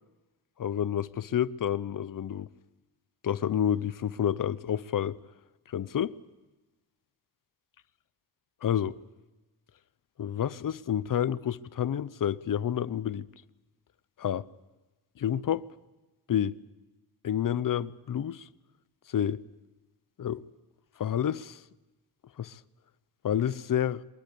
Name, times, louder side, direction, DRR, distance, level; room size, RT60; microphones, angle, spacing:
voice 1, 0.6-2.5 3.2-5.2 5.7-6.1 8.6-8.9 10.2-13.3 14.2-14.5 15.2-15.7 16.3-16.6 17.2-18.5 19.1-19.4 20.2-20.4 21.0-21.6 22.4-22.6 23.2-24.0, left 9 dB, 50° left, 0.8 m, -29 dB
24.0 x 20.0 x 8.5 m
cardioid pair, 115°, 42 cm